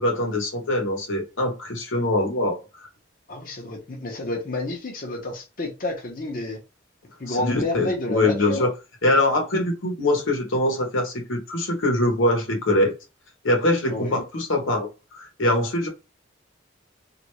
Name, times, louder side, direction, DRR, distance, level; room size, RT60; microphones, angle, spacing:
voice 1, 0.0-2.9 7.3-8.7 9.0-12.9 13.4-14.9 15.1-15.9, left 1 dB, 90° left, 1.0 m, -23 dB
voice 2, 3.3-6.6 7.2-8.7 13.9-14.2, left 2 dB, 45° left, 0.8 m, -29 dB
3.2 x 2.5 x 3.1 m
head